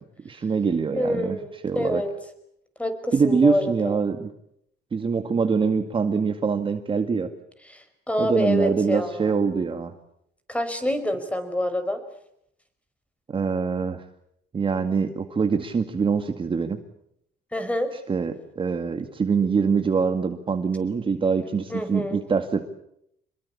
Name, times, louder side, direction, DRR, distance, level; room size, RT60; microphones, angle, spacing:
voice 1, 0.2-1.4 1.6-2.0 3.1-4.3 4.9-7.3 8.2-9.9 13.3-14.0 14.5-16.8 18.1-22.6, right 5 dB, 30° right, 7 dB, 2.0 m, -24 dB
voice 2, 0.9-2.1 2.8-4.0 7.7-9.3 10.5-12.0 17.5-17.9 21.7-22.2, left 1 dB, 5° left, 9 dB, 5.2 m, -27 dB
26.5 x 22.0 x 8.6 m, 0.75 s
cardioid pair, 110°, 17 cm